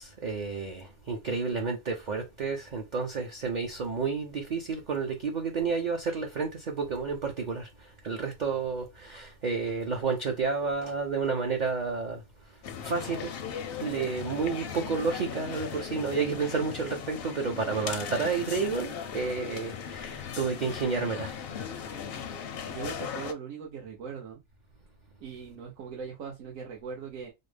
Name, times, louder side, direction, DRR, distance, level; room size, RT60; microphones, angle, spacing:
voice 1, 0.0-7.7 8.0-12.2 12.8-13.3 13.8-21.3, right 5 dB, 50° right, 0.5 m, -30 dB
sound 1, 12.6-23.3, left 7 dB, 60° left, 0.6 m, -38 dB
voice 2, 22.6-24.4 25.2-27.3, right 6 dB, 80° right, 1.1 m, -40 dB
4.1 x 2.0 x 3.2 m
omnidirectional pair, 1.4 m